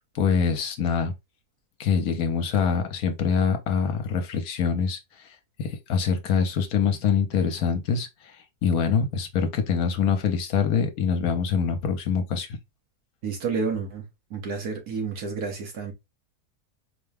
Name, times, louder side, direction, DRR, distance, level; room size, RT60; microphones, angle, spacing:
voice 1, 0.1-1.1 1.8-5.3 5.6-8.4 8.6-12.6, left 6 dB, 70° left, 1.2 m, -24 dB
voice 2, 13.2-14.0 14.3-15.9, right 4 dB, 70° right, 1.8 m, -30 dB
4.6 x 2.2 x 3.4 m
omnidirectional pair, 1.7 m